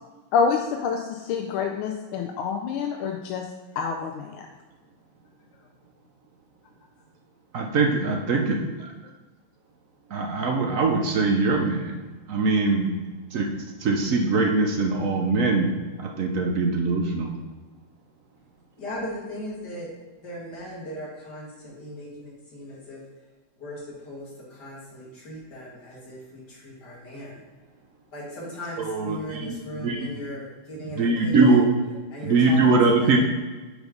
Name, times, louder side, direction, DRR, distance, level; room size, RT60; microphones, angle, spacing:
voice 1, 0.3-3.4 3.8-4.4, left 6 dB, 80° left, 3 dB, 1.5 m, -27 dB
voice 2, 7.5-8.6 10.1-12.0 12.3-12.9 13.3-13.5 13.8-15.7 16.0-17.3 28.9-30.1 31.0-31.6 32.2-33.2, right 3 dB, 60° right, 1 dB, 0.8 m, -22 dB
voice 3, 18.8-19.9 20.2-23.0 23.6-27.4 28.1-31.6 32.1-33.2, equal, 50° left, -5 dB, 2.8 m, -38 dB
6.2 x 5.0 x 5.2 m, 1.2 s
omnidirectional pair, 2.3 m